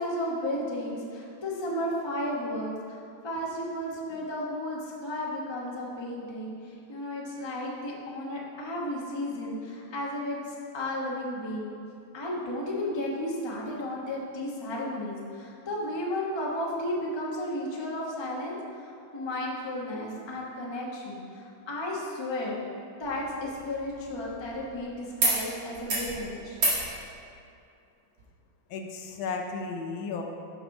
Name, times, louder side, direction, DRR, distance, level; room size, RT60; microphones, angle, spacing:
voice 1, 0.0-11.7 12.1-22.6 23.0-26.6, left 1 dB, 20° left, -4 dB, 0.8 m, -33 dB
sound 1, 23.0-24.8 25.2-25.4 25.7-26.1 26.5-26.8 28.2-28.3, right 2 dB, 75° right, 2.8 m, -30 dB
voice 2, 28.7-30.2, left 4 dB, 80° left, 3 dB, 1.5 m, -34 dB
7.3 x 6.1 x 5.4 m, 2.4 s
omnidirectional pair, 2.2 m